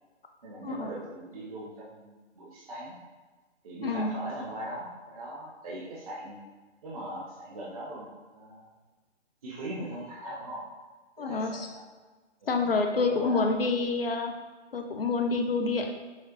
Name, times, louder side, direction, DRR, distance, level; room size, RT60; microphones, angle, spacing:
voice 1, 0.4-2.9 3.6-6.4 6.8-8.7 9.4-10.6 11.2-11.8 12.4-13.9, right 1 dB, 30° right, -5 dB, 0.6 m, -40 dB
voice 2, 3.8-4.2 11.2-11.7 12.5-14.3 14.7-16.0, left 3 dB, 55° left, 4 dB, 0.4 m, -28 dB
5.9 x 2.4 x 2.8 m, 1.3 s
figure-of-eight pair, 135°, 35 cm